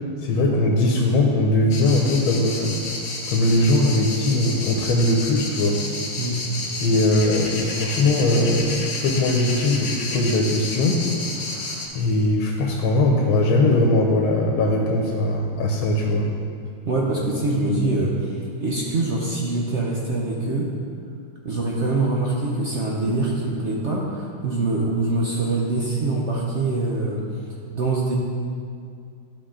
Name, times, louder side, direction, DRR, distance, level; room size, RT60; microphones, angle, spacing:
voice 1, 0.2-2.7 3.3-5.8 6.8-11.0 11.9-16.3, left 2 dB, 85° left, 0 dB, 1.7 m, -20 dB
sound 1, 1.7-11.9, left 2 dB, 50° left, 0.9 m, -31 dB
voice 2, 16.8-20.7 21.4-27.2 27.7-28.2, right 2 dB, 70° right, -3 dB, 0.6 m, -24 dB
12.0 x 5.0 x 3.8 m, 2.3 s
omnidirectional pair, 2.3 m